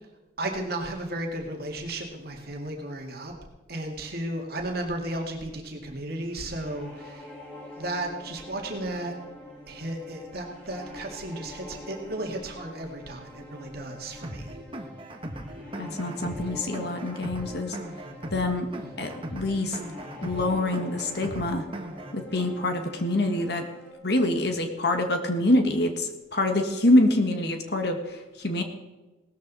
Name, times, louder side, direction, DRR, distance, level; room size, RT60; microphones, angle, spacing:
voice 1, 0.4-3.3 3.7-7.2 7.8-9.1 9.7-14.6, right 1 dB, 60° right, 1 dB, 2.2 m, -34 dB
sound 1, 6.2-23.9, left 1 dB, 10° left, 5.3 m, -45 dB
sound 2, 14.2-22.2, right 1 dB, 30° right, 1.3 m, -38 dB
voice 2, 15.8-17.8 18.3-18.7 19.0-19.8 20.2-21.7 22.1-23.6 24.0-28.6, left 1 dB, 65° left, 5 dB, 1.7 m, -25 dB
18.0 x 13.5 x 4.1 m, 1.1 s
head